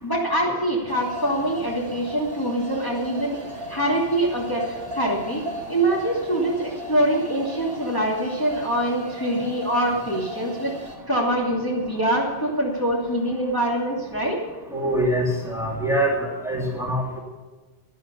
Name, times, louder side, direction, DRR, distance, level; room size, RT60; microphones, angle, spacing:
voice 1, 0.0-3.4 3.7-10.7 11.1-14.4, right 1 dB, 20° left, -4 dB, 2.8 m, -24 dB
sound 1, 0.9-11.0, equal, 75° right, 2.5 m, -37 dB
voice 2, 14.7-17.2, right 1 dB, 5° right, -2 dB, 3.0 m, -24 dB
12.0 x 12.0 x 6.9 m, 1.3 s
omnidirectional pair, 1.1 m